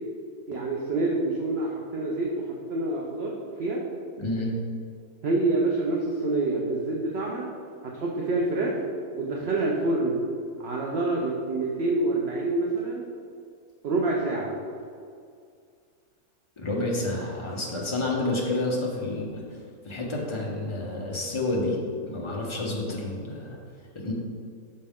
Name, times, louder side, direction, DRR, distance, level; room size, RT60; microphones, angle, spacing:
voice 1, 0.5-3.8 5.2-7.5 7.8-8.8 9.1-10.2 10.6-13.1 13.8-14.5, right 2 dB, 55° right, -3 dB, 0.7 m, -27 dB
voice 2, 4.2-4.5 16.6-21.8 22.1-23.6 23.9-24.1, left 2 dB, 25° left, -3 dB, 0.7 m, -29 dB
6.2 x 4.5 x 3.6 m, 2.3 s
omnidirectional pair, 1.6 m